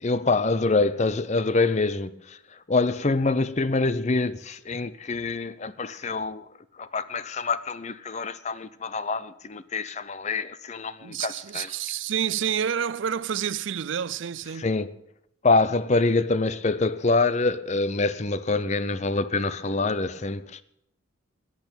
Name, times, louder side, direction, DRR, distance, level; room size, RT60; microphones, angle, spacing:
voice 1, 0.0-6.5 6.8-11.7 14.6-14.9 15.4-20.6, left 3 dB, 35° left, 0.6 m, -25 dB
voice 2, 11.0-14.7, right 8 dB, 70° right, 0.5 m, -29 dB
14.0 x 8.9 x 8.9 m
head